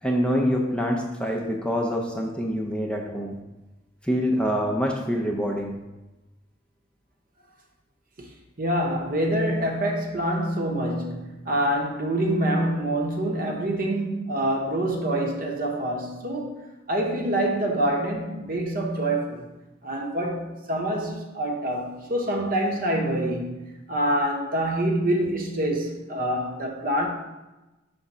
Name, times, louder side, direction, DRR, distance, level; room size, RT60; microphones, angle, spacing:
voice 1, 0.0-3.4 4.0-5.7, equal, 5° left, 0 dB, 0.5 m, -25 dB
voice 2, 8.6-16.6 16.9-19.4 19.8-27.1, right 1 dB, 45° right, 2 dB, 0.9 m, -26 dB
5.9 x 3.6 x 5.4 m, 1.1 s
head